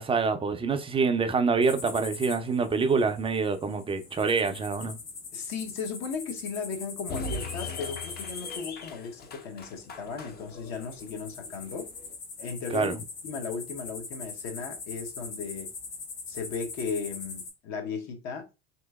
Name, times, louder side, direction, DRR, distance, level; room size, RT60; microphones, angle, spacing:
voice 1, 0.0-5.0 12.7-13.0, right 4 dB, 15° right, 0.5 m, -26 dB
sound 1, 1.6-17.5, left 4 dB, 75° left, 1.2 m, -42 dB
voice 2, 5.3-11.9 12.4-12.9 13.2-15.7 16.3-18.5, left 5 dB, 50° left, 0.9 m, -36 dB
sound 2, 7.1-12.1, left 3 dB, 30° left, 0.6 m, -40 dB
3.2 x 3.0 x 2.3 m
hypercardioid pair, 75°, 34 cm